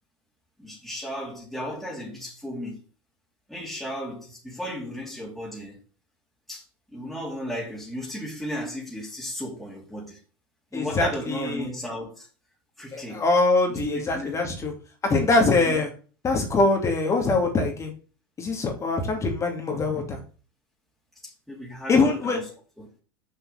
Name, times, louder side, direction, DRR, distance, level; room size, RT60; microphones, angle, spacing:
voice 1, 0.6-2.8 3.5-5.8 6.5-6.6 6.9-10.2 10.7-12.3 12.8-13.2 13.7-14.4 15.6-15.8 21.2-22.5 22.8-22.9, equal, ahead, 2.9 m, -35 dB
voice 2, 10.7-11.7 12.9-14.7 15.1-15.9 16.2-17.9 18.4-20.2 21.9-22.4, left 3 dB, 25° left, 2.5 m, -23 dB
6.6 x 5.5 x 5.7 m
hypercardioid pair, 105°, 12 cm